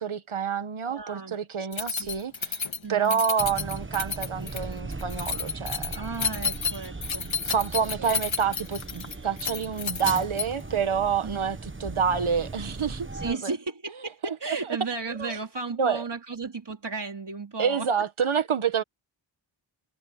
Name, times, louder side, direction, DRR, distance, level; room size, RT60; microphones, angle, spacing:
voice 1, 0.0-5.9 7.4-13.5 14.2-14.3 15.2-15.3 15.8-16.0 17.6-18.8, right 7 dB, 85° right, 1.6 m, -28 dB
voice 2, 0.9-1.4 1.7-2.1 2.8-3.5 5.9-8.2 11.2-11.4 13.1-17.9, right 4 dB, 55° right, 4.0 m, -35 dB
Keys jangling, 1.7-10.7, left 5 dB, 75° left, 2.1 m, -31 dB
sound 1, 3.4-13.3, right 3 dB, 25° right, 1.3 m, -38 dB
wide cardioid pair, 70°, 48 cm